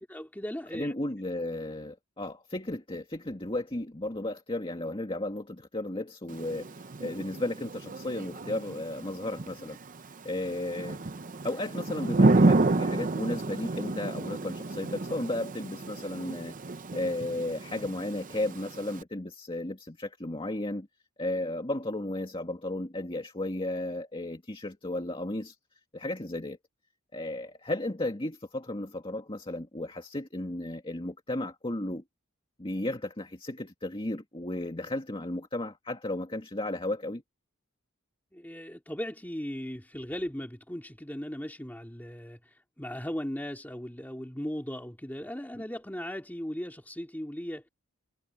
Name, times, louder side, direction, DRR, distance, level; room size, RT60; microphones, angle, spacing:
voice 1, 0.1-0.9 38.3-47.7, equal, 10° left, 2.3 m, -37 dB
voice 2, 0.7-9.8 10.2-11.0 11.4-20.9 21.2-25.6 25.9-26.6 27.1-32.0 32.6-37.2 45.5-45.6, left 1 dB, 25° left, 2.0 m, -34 dB
Thunder / Rain, 6.3-19.0, right 2 dB, 40° right, 0.7 m, -30 dB
head